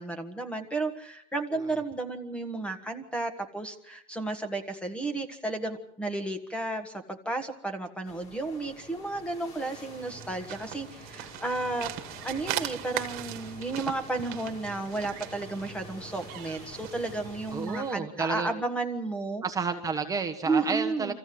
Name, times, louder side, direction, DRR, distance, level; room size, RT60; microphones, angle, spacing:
voice 1, 0.0-11.9 12.2-19.4 20.4-21.1, right 2 dB, 5° left, 8 dB, 1.6 m, -33 dB
sound 1, 8.0-17.7, left 2 dB, 40° left, 4.5 m, -48 dB
sound 2, 9.7-18.0, right 13 dB, 65° right, 1.6 m, -40 dB
voice 2, 17.5-18.6 19.4-21.1, right 5 dB, 20° right, 4 dB, 1.3 m, -31 dB
24.5 x 15.0 x 7.8 m, 0.75 s
cardioid pair, 135°, 17 cm